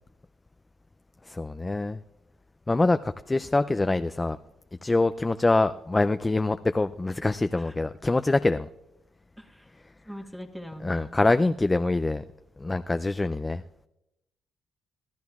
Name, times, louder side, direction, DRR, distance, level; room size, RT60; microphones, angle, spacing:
voice 1, 1.2-2.0 2.7-4.4 4.8-8.7 10.8-12.2 12.6-13.6, left 2 dB, 15° left, 10 dB, 0.3 m, -25 dB
voice 2, 9.4-9.7 10.0-11.1, equal, 5° right, 5 dB, 1.3 m, -43 dB
24.5 x 14.0 x 2.4 m, 0.91 s
cardioid pair, 105°, 0 cm